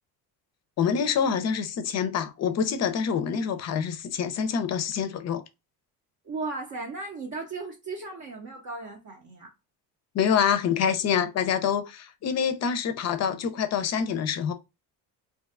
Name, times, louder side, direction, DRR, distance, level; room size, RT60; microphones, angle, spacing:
voice 1, 0.8-5.4 10.1-14.5, left 7 dB, 40° left, 0.5 m, -26 dB
voice 2, 6.2-9.5, right 3 dB, 45° right, 0.6 m, -36 dB
2.5 x 2.2 x 2.3 m
cardioid pair, 100°, 40 cm